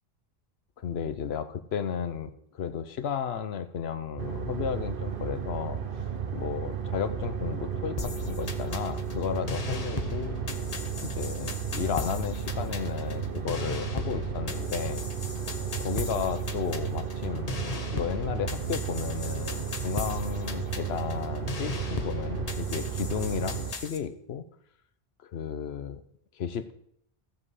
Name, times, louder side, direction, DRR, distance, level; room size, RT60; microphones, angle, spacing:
voice 1, 0.8-5.8 6.3-10.4 11.0-15.1 15.8-17.5 17.9-24.4 25.2-26.0 26.4-26.7, left 7 dB, 80° left, 12 dB, 1.0 m, -33 dB
sound 1, 4.2-23.7, right 7 dB, 60° right, 1.1 m, -33 dB
sound 2, 8.0-24.0, left 5 dB, 40° left, 0.9 m, -38 dB
15.0 x 7.6 x 4.9 m, 0.70 s
omnidirectional pair, 1.0 m